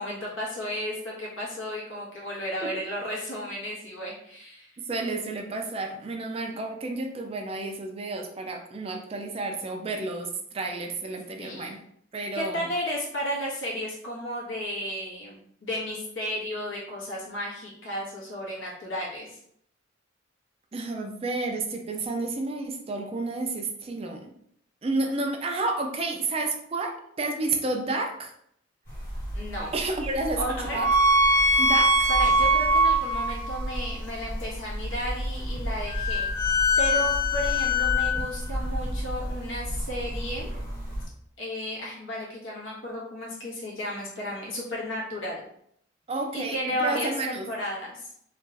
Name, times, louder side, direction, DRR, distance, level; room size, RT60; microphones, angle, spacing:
voice 1, 0.0-4.7 11.4-11.8 12.3-19.4 29.3-29.7 30.4-30.8 32.1-40.5 41.4-45.4 46.3-48.1, equal, 80° left, -5 dB, 1.4 m, -33 dB
voice 2, 4.9-11.8 12.1-12.6 20.7-24.3 24.8-28.3 29.7-30.4 30.7-30.9 31.6-32.1 46.1-47.5, right 2 dB, 30° right, 3 dB, 0.4 m, -31 dB
sound 1, 28.9-41.0, equal, 50° left, 1.4 m, -25 dB
3.2 x 2.5 x 3.3 m, 0.69 s
head